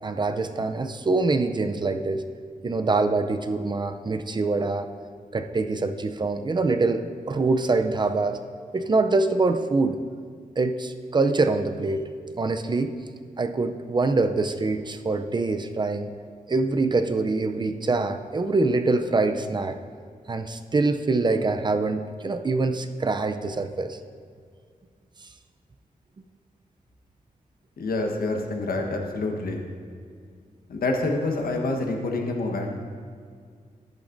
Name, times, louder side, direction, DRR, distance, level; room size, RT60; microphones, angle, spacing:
voice 1, 0.0-2.2 2.6-4.9 5.3-8.4 8.7-10.0 10.6-12.1 12.4-12.9 13.4-16.1 16.5-19.8 20.3-24.0 28.8-28.9, right 3 dB, 30° right, 7 dB, 0.5 m, -24 dB
voice 2, 27.8-29.6 30.7-32.8, left 2 dB, 90° left, 2 dB, 1.2 m, -27 dB
13.5 x 10.5 x 2.6 m, 2.1 s
wide cardioid pair, 140°, 15 cm